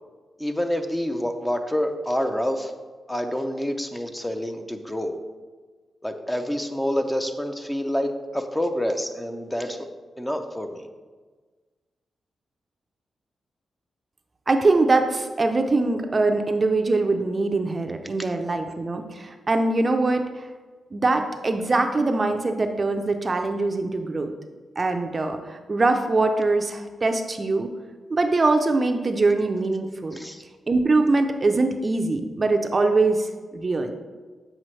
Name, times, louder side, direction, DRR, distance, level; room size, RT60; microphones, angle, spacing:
voice 1, 0.4-2.7 3.1-5.2 6.0-9.8 10.2-10.9 30.1-30.4, equal, 10° left, 5 dB, 0.6 m, -27 dB
voice 2, 14.5-20.5 20.9-24.3 24.8-27.7 28.1-30.2 30.7-33.9, right 3 dB, 35° right, 6 dB, 0.5 m, -23 dB
7.5 x 4.8 x 3.2 m, 1.4 s
cardioid pair, 80°, 0 cm